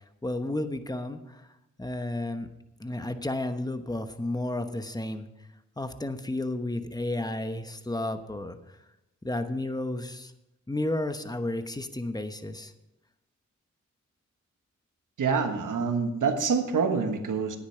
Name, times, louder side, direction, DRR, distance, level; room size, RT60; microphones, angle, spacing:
voice 1, 0.2-1.4 1.8-2.5 2.8-5.3 5.8-8.6 9.2-10.3 10.7-12.7, left 1 dB, 15° left, 9 dB, 1.0 m, -32 dB
voice 2, 15.2-17.6, right 5 dB, 85° right, 6 dB, 1.4 m, -26 dB
10.0 x 9.7 x 5.7 m, 0.93 s
cardioid pair, 75°, 30 cm